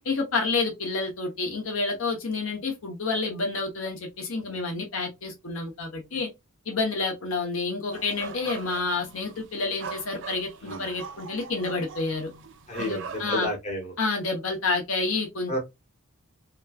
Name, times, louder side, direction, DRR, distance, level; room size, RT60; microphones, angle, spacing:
voice 1, 0.0-6.3 6.7-12.3 12.8-13.5 14.0-15.6, left 3 dB, 65° left, 0.9 m, -29 dB
sound 1, 7.9-13.5, right 6 dB, 55° right, 0.4 m, -41 dB
voice 2, 12.7-13.9 15.5-15.6, left 1 dB, 30° left, 0.9 m, -31 dB
2.9 x 2.3 x 2.3 m
head